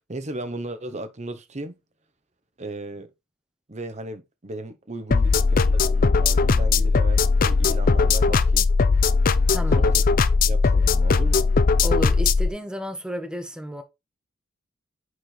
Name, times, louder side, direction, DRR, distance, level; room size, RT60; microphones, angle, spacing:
voice 1, 0.1-1.7 2.6-3.1 3.7-8.7 9.7-10.0 10.4-11.5, right 2 dB, 35° right, 0.9 m, -36 dB
sound 1, 5.1-12.5, left 4 dB, 45° left, 0.4 m, -19 dB
voice 2, 9.5-9.9 11.8-13.8, equal, 5° right, 1.0 m, -32 dB
6.2 x 4.5 x 4.9 m
head